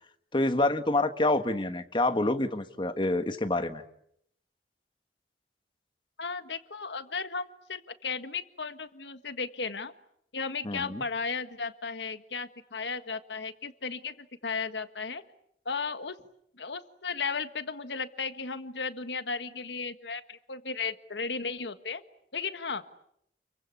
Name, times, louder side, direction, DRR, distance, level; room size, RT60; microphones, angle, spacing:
voice 1, 0.3-3.8 10.6-11.0, left 2 dB, 25° left, 9 dB, 1.4 m, -27 dB
voice 2, 6.2-9.9 10.3-15.2 15.6-16.2 16.5-22.0 22.3-22.8, left 5 dB, 85° left, 10 dB, 1.6 m, -35 dB
30.0 x 23.5 x 8.4 m, 0.74 s
head